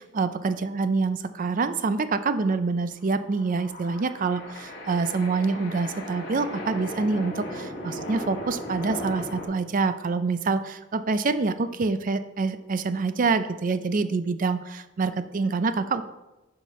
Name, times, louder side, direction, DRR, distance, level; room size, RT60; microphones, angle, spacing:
voice 1, 0.0-16.0, right 4 dB, 45° right, 11 dB, 0.4 m, -26 dB
sound 1, 3.0-9.5, equal, 60° left, 1.8 m, -37 dB
9.8 x 5.9 x 3.1 m, 1.0 s
head